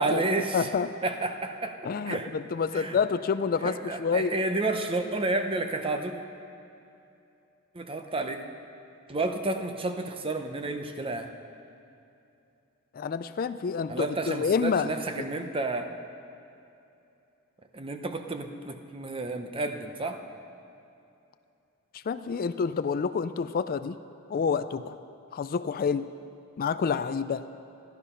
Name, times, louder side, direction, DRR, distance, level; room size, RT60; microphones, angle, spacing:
voice 1, 0.0-0.7 1.0-1.8 2.0-2.3 2.7-3.0 3.6-6.2 7.7-8.4 9.1-11.3 13.9-15.9 17.7-20.2, right 2 dB, 25° right, 6 dB, 0.8 m, -31 dB
voice 2, 0.5-0.9 1.8-3.7 4.0-4.3 12.9-15.2 21.9-24.0 24.3-25.0 25.3-26.1 26.6-27.5, left 5 dB, 40° left, 12 dB, 0.3 m, -28 dB
14.0 x 12.0 x 5.5 m, 2.7 s
head